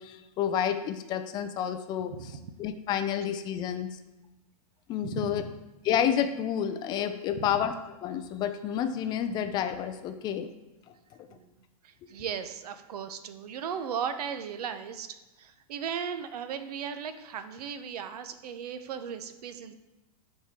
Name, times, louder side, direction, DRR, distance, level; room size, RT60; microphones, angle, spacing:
voice 1, 0.0-2.1 2.6-4.0 4.9-5.4 5.9-7.7 8.0-10.5, left 9 dB, 20° left, 9 dB, 0.3 m, -29 dB
voice 2, 2.1-2.5 5.0-5.5 7.4-7.6 11.3-19.7, right 7 dB, 75° right, 10 dB, 0.8 m, -37 dB
10.0 x 4.3 x 3.6 m, 1.0 s
supercardioid pair, 145°, 20 cm